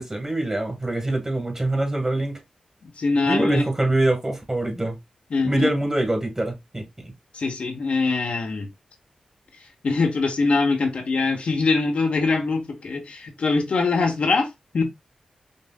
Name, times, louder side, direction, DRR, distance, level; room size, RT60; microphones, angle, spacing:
voice 1, 0.0-2.4 3.3-5.0 5.4-7.1, right 1 dB, 25° right, 1.7 m, -24 dB
voice 2, 2.8-3.6 5.3-5.6 7.3-8.7 9.8-14.5 14.7-14.8, left 3 dB, 70° left, 0.9 m, -23 dB
5.3 x 2.6 x 2.3 m
cardioid pair, 45°, 2 cm